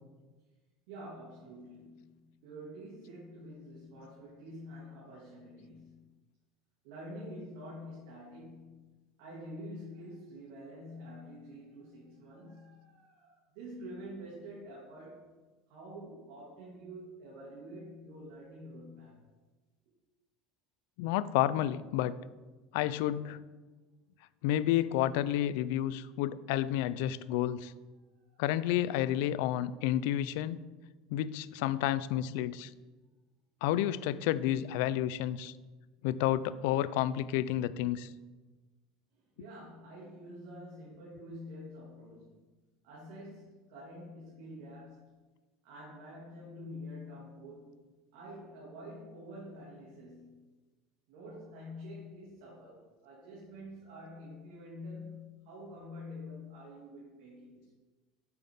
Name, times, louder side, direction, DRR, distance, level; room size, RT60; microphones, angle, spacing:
voice 1, 0.9-6.1 6.8-8.9 9.2-15.3 15.7-19.2 28.2-28.4 39.1-42.4 42.8-45.1 45.6-47.8 48.1-50.5 51.1-57.7, equal, 75° right, -6 dB, 2.2 m, -47 dB
voice 2, 21.0-22.2 22.7-23.4 24.4-27.7 28.4-30.6 31.1-32.7 33.6-35.5 36.0-38.1, left 12 dB, 75° left, 17 dB, 0.3 m, -30 dB
7.6 x 5.6 x 3.6 m, 1.2 s
supercardioid pair, 110°, 0 cm